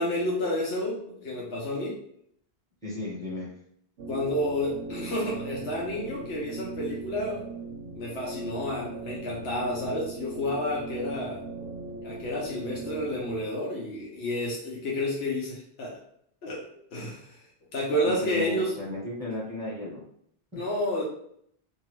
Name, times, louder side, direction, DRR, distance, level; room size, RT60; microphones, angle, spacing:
voice 1, 0.0-1.0 1.2-2.0 4.1-7.4 8.0-11.4 12.0-15.9 16.4-17.4 17.7-18.8 20.5-21.0, left 1 dB, 80° left, -4 dB, 1.0 m, -30 dB
voice 2, 0.9-1.5 2.8-3.5 18.0-20.0 20.5-20.6, left 1 dB, 5° left, -6 dB, 1.1 m, -35 dB
sound 1, 4.0-13.4, right 2 dB, 85° right, 0.9 m, -39 dB
2.7 x 2.7 x 3.0 m, 0.69 s
omnidirectional pair, 1.1 m